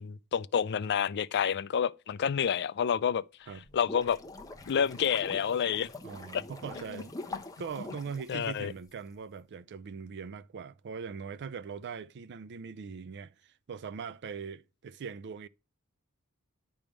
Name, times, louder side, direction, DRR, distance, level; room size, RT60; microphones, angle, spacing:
voice 1, 0.0-3.2 3.7-4.2 4.7-5.9 6.9-7.0 8.3-8.7, left 7 dB, 50° left, 0.4 m, -29 dB
sound 1, 3.5-8.9, left 2 dB, 15° left, 0.8 m, -44 dB
voice 2, 6.0-7.1 7.6-15.5, right 6 dB, 50° right, 0.4 m, -41 dB
10.5 x 3.5 x 6.1 m
head